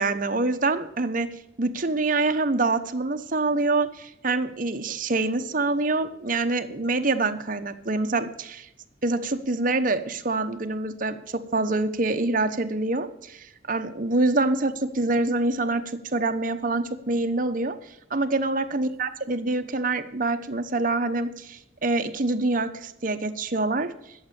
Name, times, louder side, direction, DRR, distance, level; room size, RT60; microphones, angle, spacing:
voice 1, 0.0-8.7 9.0-17.7 18.1-23.9, right 2 dB, 45° right, 8 dB, 0.9 m, -26 dB
12.0 x 7.5 x 6.8 m, 0.81 s
head